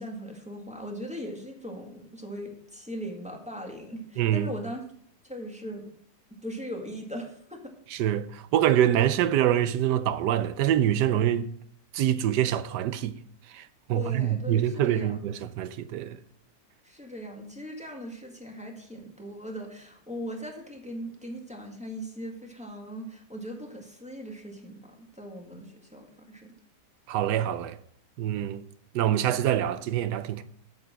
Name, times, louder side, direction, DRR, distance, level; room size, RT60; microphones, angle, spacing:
voice 1, 0.0-4.8 5.2-5.8 6.4-7.7 13.9-15.2 16.8-26.5, equal, 5° right, 1.7 m, -39 dB
voice 2, 4.2-4.5 7.9-11.5 11.9-13.1 13.5-16.2 27.1-27.8 28.2-28.6 28.9-30.4, right 11 dB, 85° right, 1.2 m, -25 dB
8.7 x 6.7 x 6.4 m
omnidirectional pair, 1.8 m